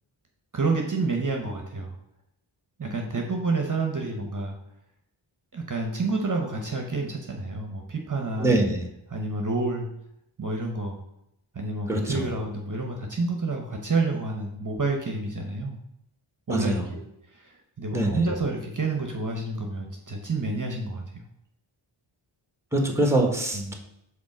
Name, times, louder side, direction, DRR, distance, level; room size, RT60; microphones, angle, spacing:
voice 1, 0.5-1.9 2.8-4.5 5.5-8.6 9.1-9.9 10.4-11.0 11.5-15.8 16.5-17.1 17.3-21.2 23.5-23.7, right 3 dB, 40° right, 2 dB, 1.0 m, -29 dB
voice 2, 8.4-8.8 11.9-12.2 16.5-16.9 17.9-18.2 22.7-23.7, right 1 dB, 5° right, 3 dB, 1.4 m, -24 dB
5.2 x 4.0 x 6.0 m, 0.80 s
wide cardioid pair, 65°, 49 cm